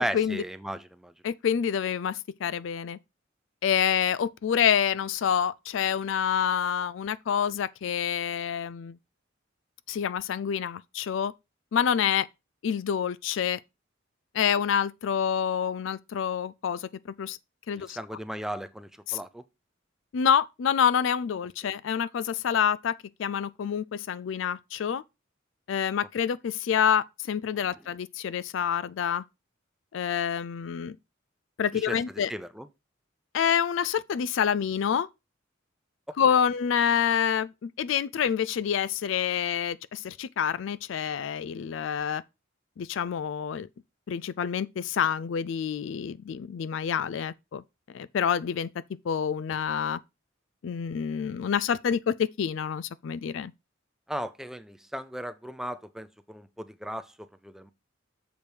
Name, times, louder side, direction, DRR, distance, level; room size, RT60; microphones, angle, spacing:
voice 1, 0.0-1.1 17.8-19.4 31.7-32.0 32.3-32.7 54.1-57.7, equal, ahead, 0.5 m, -36 dB
voice 2, 1.2-3.0 3.6-9.0 9.9-11.3 11.7-12.3 12.6-13.6 14.3-16.9 17.2-17.4 17.7-18.0 19.1-19.2 20.1-22.9 23.2-25.0 25.7-29.2 29.9-31.0 31.6-32.3 33.3-35.1 36.2-42.2 42.8-43.7 44.1-47.6 47.9-48.7 49.0-50.0 50.6-53.5, left 8 dB, 65° left, 0.4 m, -27 dB
6.9 x 5.0 x 4.5 m
head